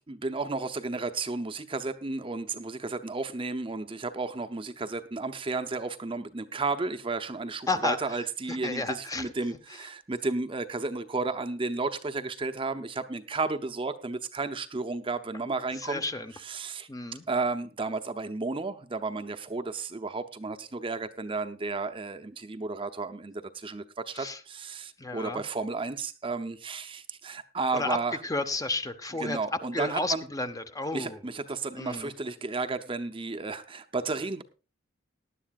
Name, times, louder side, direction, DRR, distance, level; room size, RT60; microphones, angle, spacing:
voice 1, 0.0-16.1 16.4-16.9 17.3-28.2 29.2-30.2 30.9-34.4, right 3 dB, 25° right, 8 dB, 0.7 m, -33 dB
voice 2, 7.7-8.0 8.5-9.3 15.8-16.3 16.9-17.2 24.1-24.4 25.0-25.4 27.7-28.0 28.2-29.4 29.7-31.2 31.7-32.1, left 2 dB, 20° left, 9 dB, 0.8 m, -32 dB
19.0 x 11.0 x 2.4 m, 0.32 s
head